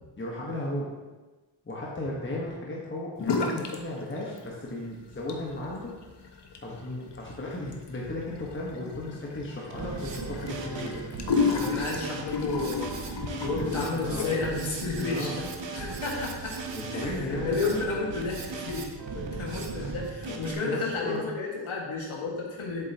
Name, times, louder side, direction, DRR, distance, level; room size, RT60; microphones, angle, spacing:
voice 1, 0.2-0.9 1.6-5.9 6.2-6.3 6.6-11.0 13.5-14.4 14.9-15.3 16.7-17.8 19.8-19.9 20.7-21.3, left 1 dB, 25° left, -4 dB, 1.3 m, -35 dB
sound 1, 3.2-3.8 4.1-4.7 5.1-14.6, left 4 dB, 60° left, 1.0 m, -33 dB
Drum kit, 9.7-20.5, right 4 dB, 65° right, 1.1 m, -37 dB
voice 2, 11.5-12.9 13.4-16.5 16.9-18.9 19.1-22.9, left 3 dB, 80° left, -2 dB, 1.9 m, -32 dB
7.7 x 7.4 x 2.9 m, 1.2 s
cardioid pair, 95°, 48 cm